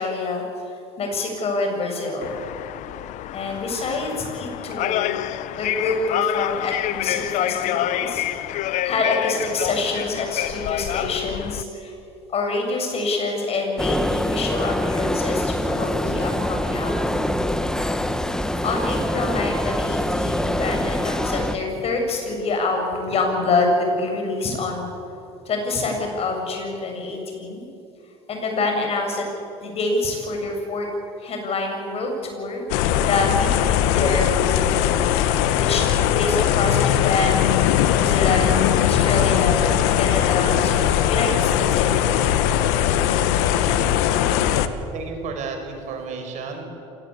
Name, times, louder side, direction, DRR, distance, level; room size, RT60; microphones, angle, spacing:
voice 1, 0.0-2.3 3.3-5.2 5.6-8.4 8.8-11.9 12.3-17.2 18.6-24.9 25.5-27.7 28.3-29.3 29.6-30.9 31.2-32.6 33.0-35.1 35.4-42.2, left 3 dB, 45° left, 3 dB, 7.5 m, -26 dB
sound 1, 2.2-11.6, left 14 dB, 65° left, 0.9 m, -27 dB
sound 2, 13.8-21.6, left 1 dB, 5° left, 1.5 m, -24 dB
sound 3, 32.7-44.7, left 10 dB, 80° left, 1.3 m, -20 dB
voice 2, 44.9-46.6, right 5 dB, 60° right, 4 dB, 5.7 m, -32 dB
26.0 x 18.5 x 8.7 m, 2.8 s
supercardioid pair, 80°, 14 cm